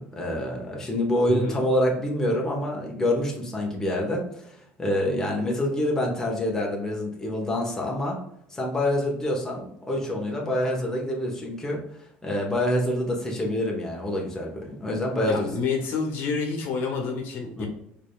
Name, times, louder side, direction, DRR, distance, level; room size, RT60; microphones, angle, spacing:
voice 1, 0.0-4.5 4.8-8.2 8.5-11.8 12.2-15.5 17.6-17.7, left 1 dB, 10° left, -2 dB, 1.2 m, -26 dB
voice 2, 15.2-17.7, left 4 dB, 60° left, 2 dB, 1.1 m, -28 dB
4.8 x 3.4 x 2.3 m, 0.77 s
cardioid pair, 120°, 4 cm